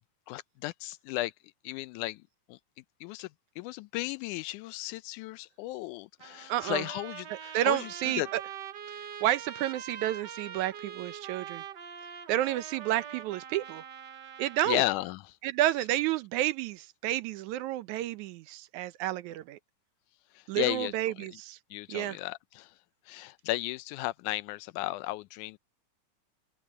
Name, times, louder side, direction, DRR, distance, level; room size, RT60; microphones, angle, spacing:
voice 1, 0.3-1.3 1.6-2.2 2.5-2.6 3.0-3.3 3.6-8.3 14.6-15.4 20.4-20.9 21.7-22.7 23.1-25.6, left 18 dB, 85° left, 2.1 m, -34 dB
Trumpet, 6.2-15.1, right 8 dB, 65° right, 1.1 m, -44 dB
voice 2, 6.5-6.8 7.3-8.4 9.2-11.6 12.3-13.8 14.4-14.8 15.4-19.6 20.5-21.6 21.9-22.2, right 14 dB, 80° right, 2.1 m, -30 dB
open air
omnidirectional pair, 3.5 m